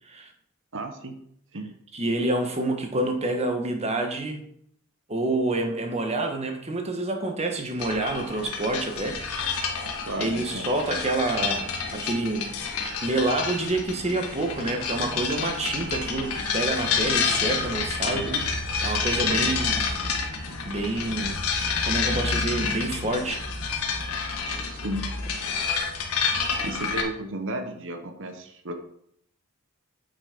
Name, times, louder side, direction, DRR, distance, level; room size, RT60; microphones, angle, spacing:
voice 1, 0.7-1.2 1.5-1.8 10.1-10.7 11.0-11.1 18.1-18.5 19.3-19.4 24.7-25.0 26.6-28.7, right 1 dB, 60° right, 6 dB, 1.1 m, -34 dB
voice 2, 1.9-4.4 5.1-9.8 10.2-18.3 18.8-19.8 20.6-21.4 21.8-23.4, right 2 dB, 30° right, 4 dB, 1.3 m, -28 dB
sound 1, 7.8-27.0, left 5 dB, 75° left, 1.6 m, -29 dB
9.2 x 6.2 x 5.2 m, 0.70 s
head